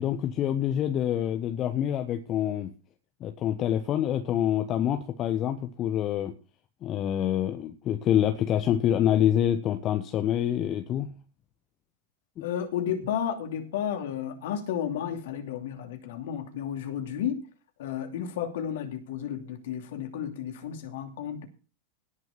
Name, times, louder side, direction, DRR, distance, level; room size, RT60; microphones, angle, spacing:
voice 1, 0.0-2.7 3.2-6.3 6.8-11.1 12.4-12.5, left 10 dB, 30° left, 1.2 m, -26 dB
voice 2, 12.4-17.5 17.8-21.5, left 9 dB, 55° left, 2.8 m, -32 dB
18.0 x 6.3 x 5.7 m
figure-of-eight pair, 90°, 0 cm